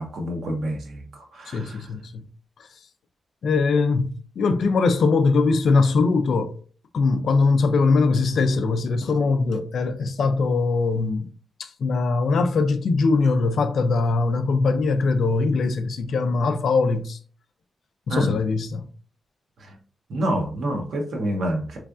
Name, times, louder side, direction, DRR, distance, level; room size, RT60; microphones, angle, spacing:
voice 1, 0.0-1.9 18.1-18.3 19.6-19.8 20.1-21.8, right 1 dB, 70° right, 1.0 m, -28 dB
voice 2, 1.5-2.3 3.4-6.6 6.9-11.3 11.6-17.2 18.1-18.9, left 4 dB, 70° left, 0.4 m, -21 dB
3.5 x 3.1 x 2.5 m
cardioid pair, 105°, 0 cm